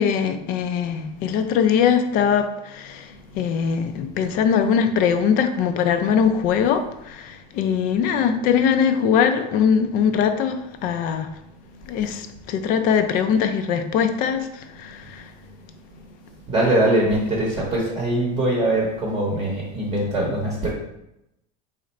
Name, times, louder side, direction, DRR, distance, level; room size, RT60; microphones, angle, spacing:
voice 1, 0.0-11.3 11.9-15.3, left 7 dB, 40° left, 8 dB, 0.4 m, -21 dB
voice 2, 14.9-20.7, right 1 dB, 20° right, -3 dB, 0.8 m, -23 dB
4.2 x 2.5 x 4.1 m, 0.84 s
cardioid pair, 155°, 21 cm